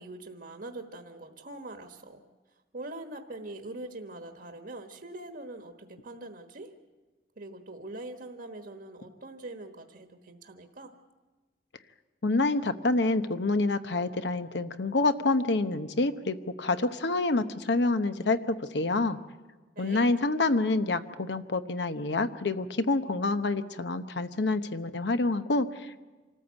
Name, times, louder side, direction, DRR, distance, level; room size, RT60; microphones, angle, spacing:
voice 1, 0.0-2.2 2.7-6.7 7.4-10.9 19.7-20.1, right 2 dB, 55° right, 5 dB, 1.3 m, -43 dB
voice 2, 12.2-19.2 19.8-26.0, left 2 dB, 70° left, 10 dB, 1.0 m, -27 dB
26.0 x 14.0 x 8.2 m, 1.3 s
head